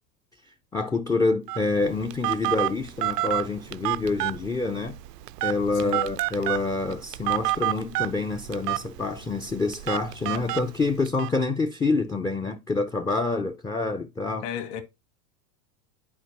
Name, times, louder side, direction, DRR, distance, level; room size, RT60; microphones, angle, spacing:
voice 1, 0.7-5.0 5.4-14.5, left 3 dB, 10° left, 0.4 m, -27 dB
Telephone, 1.5-11.3, right 17 dB, 75° right, 0.6 m, -30 dB
voice 2, 5.7-6.1 14.4-14.8, left 9 dB, 60° left, 1.7 m, -34 dB
10.5 x 4.5 x 2.9 m
hypercardioid pair, 90°, 49 cm